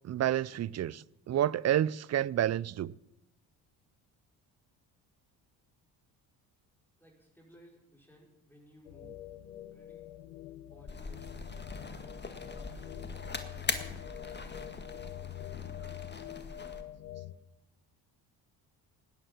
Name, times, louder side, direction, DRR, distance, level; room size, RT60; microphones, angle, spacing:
voice 1, 0.0-2.9, right 11 dB, 35° right, 0.5 m, -29 dB
voice 2, 7.0-9.2 9.7-10.0 10.6-11.5 12.0-12.9 13.5-16.8, equal, 5° left, 5.1 m, -60 dB
sound 1, 8.9-17.3, left 14 dB, 90° left, 0.9 m, -45 dB
sound 2, 10.9-16.8, left 3 dB, 20° left, 1.8 m, -41 dB
18.0 x 10.0 x 5.9 m
hypercardioid pair, 55°, 47 cm